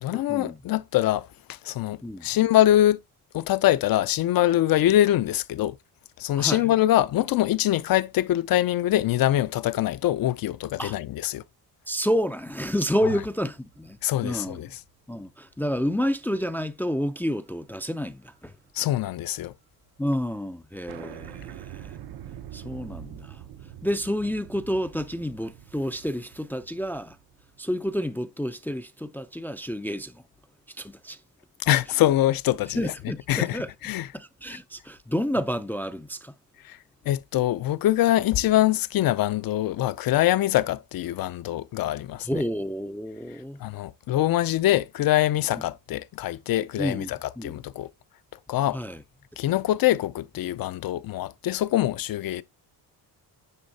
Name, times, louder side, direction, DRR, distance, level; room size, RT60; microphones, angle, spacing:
voice 1, 0.0-3.0 3.3-5.8 6.2-11.4 14.0-14.7 18.7-19.5 31.6-32.8 33.3-34.1 36.6-36.8 37.1-42.4 43.6-47.9 48.5-48.8 49.4-52.4, left 14 dB, 60° left, 0.5 m, -24 dB
voice 2, 11.9-14.0 14.2-14.7 15.1-18.5 20.0-22.0 22.5-23.4 23.8-27.2 27.6-30.2 30.8-31.2 32.7-33.7 34.1-36.3 42.2-43.6 46.8-47.6 48.7-49.0, equal, 5° left, 0.3 m, -29 dB
sound 1, 12.7-15.3 15.7-15.8 17.3-17.7 17.9-19.4 19.7-19.8 20.0-20.1 20.4-20.5 20.9-27.6, right 11 dB, 75° right, 0.8 m, -45 dB
9.9 x 3.4 x 4.0 m
cardioid pair, 145°, 39 cm